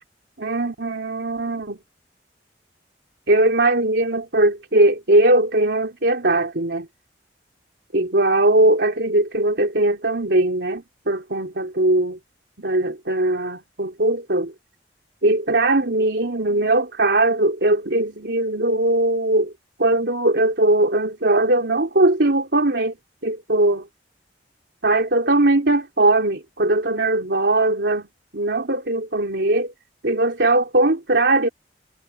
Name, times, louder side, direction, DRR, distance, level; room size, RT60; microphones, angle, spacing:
voice 1, 0.4-1.8 3.3-6.9 7.9-12.2 12.6-14.5 15.2-19.5 19.8-22.9 23.2-23.9 24.8-28.1 28.3-29.7 30.0-31.5, right 2 dB, 70° right, 3.0 m, -20 dB
head